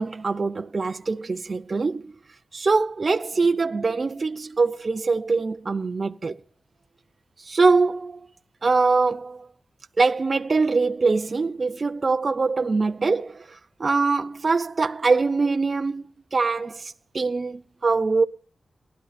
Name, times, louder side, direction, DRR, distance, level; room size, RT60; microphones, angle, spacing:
voice 1, 0.0-2.0 2.5-6.3 7.5-8.2 8.6-9.4 10.0-13.4 13.8-16.0 16.3-16.8 17.1-18.2, right 4 dB, 45° right, 0.5 m, -23 dB
18.5 x 12.0 x 3.4 m
cardioid pair, 75°, 0 cm